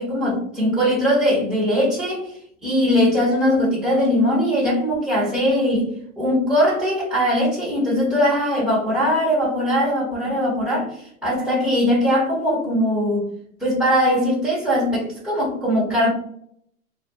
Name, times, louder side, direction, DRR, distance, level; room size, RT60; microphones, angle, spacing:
voice 1, 0.0-2.3 2.6-5.9 6.2-13.3 13.6-16.1, equal, 5° right, -8 dB, 0.7 m, -20 dB
2.3 x 2.1 x 2.7 m, 0.63 s
hypercardioid pair, 110°, 43 cm